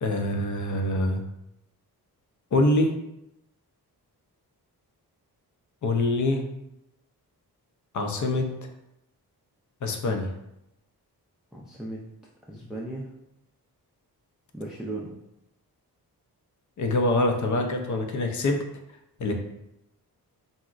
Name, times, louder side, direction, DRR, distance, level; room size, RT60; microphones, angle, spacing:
voice 1, 0.0-1.2 2.5-2.9 5.8-6.5 7.9-8.5 9.8-10.3 16.8-18.6 19.2-19.3, left 2 dB, 50° left, 4 dB, 0.5 m, -24 dB
voice 2, 11.5-12.0 12.5-13.1 14.5-15.1, right 2 dB, ahead, -4 dB, 0.3 m, -36 dB
3.8 x 2.1 x 2.3 m, 0.85 s
cardioid pair, 75°, 39 cm